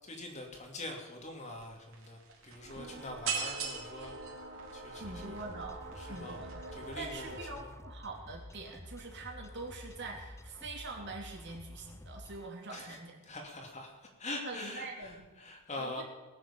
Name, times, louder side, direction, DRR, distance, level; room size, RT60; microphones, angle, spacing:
voice 1, 0.0-4.1 4.7-5.4 6.0-6.4 6.7-7.7 12.7-13.0 13.2-16.0, left 2 dB, 35° left, 2 dB, 2.8 m, -44 dB
sound 1, 1.5-1.6 1.9-7.5, right 5 dB, 80° right, 3.6 m, -41 dB
voice 2, 2.7-3.1 4.9-5.8 6.0-6.6 7.0-13.2 14.4-15.3 15.8-16.0, right 3 dB, 55° right, 0 dB, 3.3 m, -44 dB
sound 2, 5.0-12.5, left 1 dB, 15° left, 0.6 m, -50 dB
20.0 x 7.6 x 7.2 m, 1.2 s
head